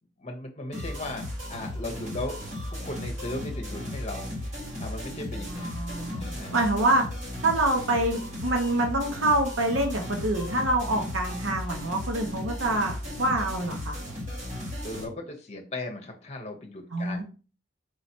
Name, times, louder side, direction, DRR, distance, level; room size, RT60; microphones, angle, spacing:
voice 1, 0.2-2.4 2.6-6.6 14.8-17.2, left 2 dB, 35° left, 3 dB, 0.9 m, -37 dB
sound 1, 0.7-15.0, left 1 dB, 35° right, 1.7 m, -35 dB
voice 2, 5.5-6.2 6.5-7.0 7.4-14.0 16.9-17.2, right 1 dB, 75° right, 2 dB, 0.9 m, -26 dB
4.8 x 3.0 x 2.8 m, 0.34 s
head